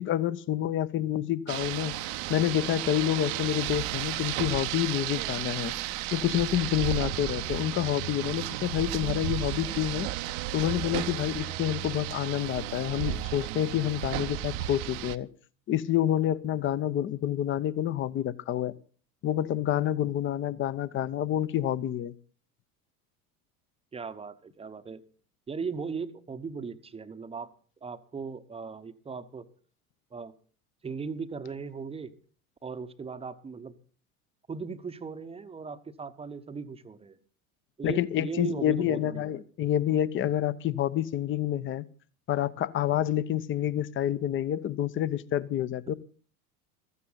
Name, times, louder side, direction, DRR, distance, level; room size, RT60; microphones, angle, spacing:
voice 1, 0.0-5.7 6.1-10.1 10.5-15.3 15.7-18.7 19.2-22.1 37.8-41.8 42.3-45.9, left 11 dB, 25° left, 18 dB, 0.8 m, -28 dB
Rain, 1.5-15.2, right 14 dB, 45° right, 0.8 m, -33 dB
voice 2, 23.9-25.0 25.5-27.5 27.8-29.5 30.1-30.3 30.8-32.1 32.6-33.7 34.5-37.2 37.8-39.4, right 5 dB, 15° right, 10 dB, 0.9 m, -38 dB
15.0 x 14.0 x 4.0 m, 0.43 s
figure-of-eight pair, 75°, 45 cm